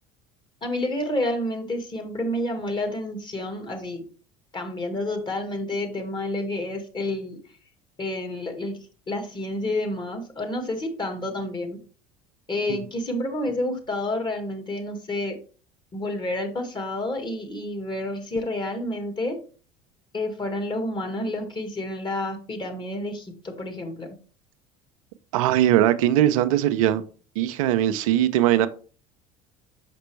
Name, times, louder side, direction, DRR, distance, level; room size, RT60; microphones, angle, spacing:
voice 1, 0.6-4.0 4.5-7.4 8.0-8.8 9.1-11.8 12.5-15.4 15.9-19.4 20.1-24.2, left 1 dB, 25° left, 1.8 m, -29 dB
voice 2, 25.3-27.0 27.4-28.7, right 12 dB, 80° right, 0.5 m, -20 dB
5.9 x 5.3 x 3.2 m
hypercardioid pair, 80°, 17 cm